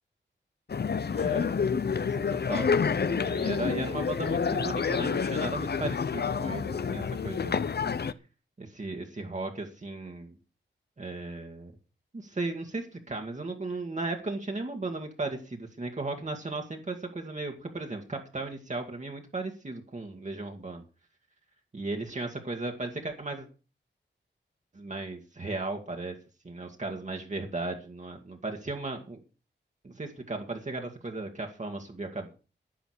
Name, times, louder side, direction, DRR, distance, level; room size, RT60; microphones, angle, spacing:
sound 1, 0.7-8.1, left 6 dB, 55° left, 0.8 m, -28 dB
voice 1, 1.1-1.5 2.0-7.6 8.6-10.3 11.0-11.7 12.1-20.8 21.7-23.5 24.7-26.2 26.4-29.2 29.8-32.3, right 2 dB, 35° right, 2 dB, 2.0 m, -36 dB
10.5 x 10.5 x 6.5 m, 0.35 s
wide cardioid pair, 105°, 20 cm